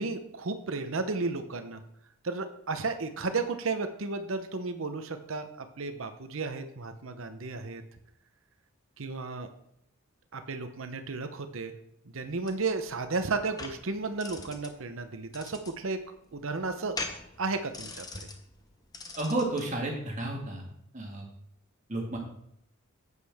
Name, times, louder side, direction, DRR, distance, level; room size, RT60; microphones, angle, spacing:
voice 1, 0.0-1.8 2.2-7.8 9.0-9.5 10.3-11.7 12.1-16.0 16.3-17.0 17.4-18.0, right 3 dB, 65° right, 8 dB, 0.8 m, -33 dB
sound 1, 12.2-19.7, left 3 dB, 15° left, 0.8 m, -43 dB
voice 2, 19.2-20.6 20.9-21.3 21.9-22.2, right 2 dB, 35° right, 0 dB, 1.9 m, -31 dB
9.8 x 8.3 x 3.5 m, 0.75 s
head